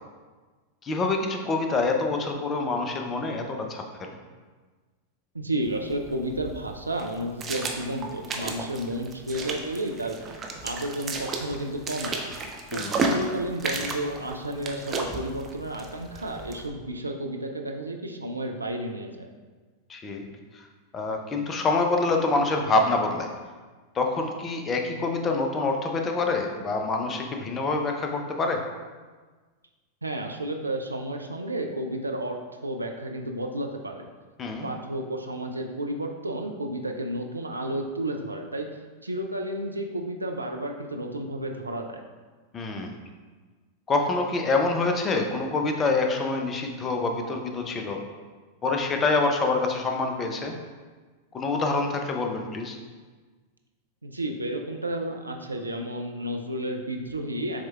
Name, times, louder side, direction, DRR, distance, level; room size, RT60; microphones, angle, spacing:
voice 1, 0.8-4.2 12.7-13.0 19.9-20.2 20.5-20.7 20.9-23.3 23.9-28.6 34.4-34.7 42.5-43.0 43.9-48.0 48.6-50.6 51.3-52.8, left 3 dB, 25° left, 3 dB, 0.6 m, -26 dB
voice 2, 5.3-10.2 10.6-12.3 12.7-19.3 30.0-32.4 32.6-34.1 34.6-38.7 39.0-42.0 54.0-57.6, right 1 dB, 80° right, 3 dB, 0.4 m, -32 dB
sound 1, 5.6-16.7, right 3 dB, 25° right, 0.6 m, -33 dB
7.2 x 3.2 x 2.3 m, 1.4 s
figure-of-eight pair, 90°, 0 cm